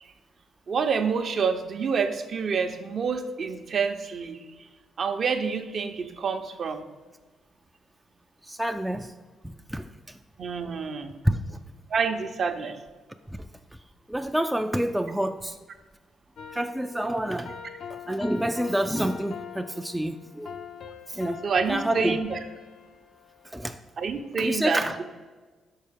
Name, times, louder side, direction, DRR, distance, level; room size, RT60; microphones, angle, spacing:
voice 1, 0.7-4.4 5.0-6.8 10.4-11.2 11.9-12.8 21.4-22.4 24.0-25.0, right 5 dB, 50° right, 6 dB, 0.6 m, -27 dB
voice 2, 8.4-9.1 9.4-10.2 11.2-11.6 13.3-13.5 14.1-15.6 16.5-17.5 17.9-20.6 21.1-21.4 21.7-22.2 23.4-23.8 24.4-25.0, right 1 dB, 5° right, 6 dB, 0.3 m, -28 dB
sound 1, 16.4-23.7, left 7 dB, 65° left, 0.6 m, -43 dB
5.6 x 4.5 x 5.0 m, 1.3 s
cardioid pair, 90°, 0 cm